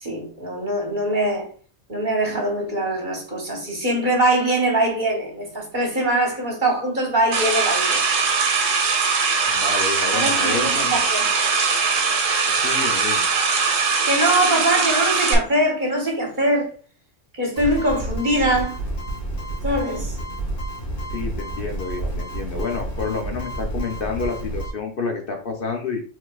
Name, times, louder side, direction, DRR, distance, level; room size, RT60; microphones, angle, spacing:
voice 1, 0.0-1.5 1.9-8.1 10.1-11.3 14.0-16.7 17.3-18.8 19.6-20.1, right 1 dB, 40° right, 1.2 m, -22 dB
sound 1, 7.3-15.3, right 5 dB, 85° right, 1.2 m, -21 dB
voice 2, 9.5-10.9 12.6-13.3 21.1-26.0, left 4 dB, 55° left, 0.8 m, -29 dB
sound 2, 17.6-24.7, right 1 dB, 80° left, 2.6 m, -30 dB
4.8 x 3.9 x 2.3 m
omnidirectional pair, 1.3 m